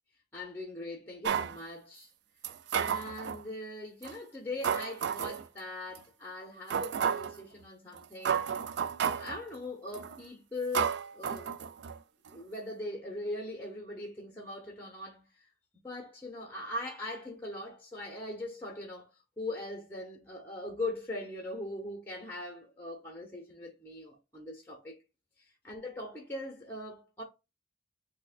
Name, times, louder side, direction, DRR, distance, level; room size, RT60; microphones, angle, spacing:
voice 1, 0.3-2.1 2.7-8.6 9.2-11.5 12.3-15.5 15.8-19.1 19.4-25.0 25.4-27.2, left 2 dB, 10° left, 0.8 m, -41 dB
sound 1, 1.2-1.6 2.4-3.4 4.0-4.1 4.6-5.4 6.0-6.1 6.7-7.4 8.0-8.1 8.3-9.4 9.9-10.2 10.7-12.0 12.3-12.4, right 7 dB, 65° right, 0.3 m, -32 dB
6.2 x 2.2 x 2.4 m
head